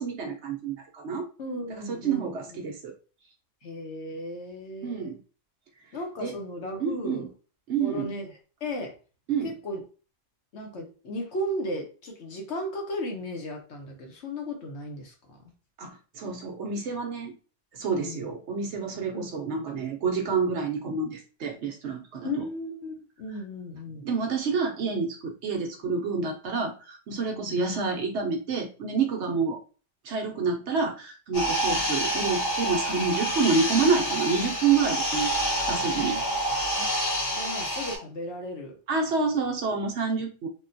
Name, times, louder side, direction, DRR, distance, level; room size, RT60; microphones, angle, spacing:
voice 1, 0.0-1.3 1.8-2.9 4.8-5.2 6.2-6.3 6.8-7.3 7.7-8.1 9.3-9.5 15.8-17.3 17.7-22.3 24.0-29.6 30.0-35.3 35.7-36.2 38.9-40.5, right 5 dB, 65° right, 2 dB, 0.8 m, -28 dB
voice 2, 1.4-2.6 3.6-5.1 5.9-7.3 7.8-8.9 9.4-9.8 10.5-15.5 18.0-18.3 19.1-19.2 22.2-24.1 27.3-27.6 35.9-36.2 36.8-36.9 37.3-38.7, left 1 dB, 60° left, 2 dB, 1.0 m, -35 dB
sound 1, 31.3-38.0, right 1 dB, 75° left, 1.6 m, -28 dB
3.6 x 2.3 x 2.6 m, 0.36 s
omnidirectional pair, 1.4 m